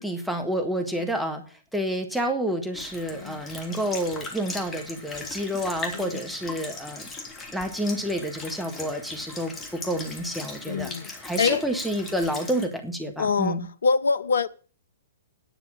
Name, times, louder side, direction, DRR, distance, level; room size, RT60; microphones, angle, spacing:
voice 1, 0.0-1.4 1.7-7.1 7.5-13.7, equal, ahead, 1.9 m, -29 dB
Sink (filling or washing) / Liquid, 2.7-12.7, left 3 dB, 20° left, 3.0 m, -39 dB
voice 2, 10.7-11.1 11.4-11.6 13.2-14.5, left 5 dB, 65° left, 0.8 m, -25 dB
10.5 x 6.8 x 8.7 m
figure-of-eight pair, 110°, 0 cm